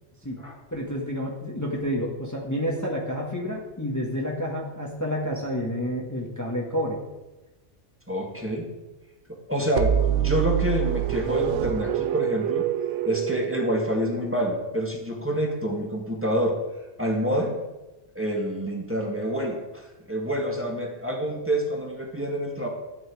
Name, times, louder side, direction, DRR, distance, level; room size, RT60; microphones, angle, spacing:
voice 1, 0.7-7.0, equal, 15° left, -2 dB, 1.6 m, -29 dB
voice 2, 8.1-8.6 9.5-12.7 13.1-16.6 17.0-17.6 18.1-22.7, equal, 10° right, -1 dB, 2.0 m, -27 dB
sound 1, 9.8-14.5, right 11 dB, 80° right, 0.9 m, -26 dB
13.0 x 9.3 x 4.8 m, 1.1 s
omnidirectional pair, 1.2 m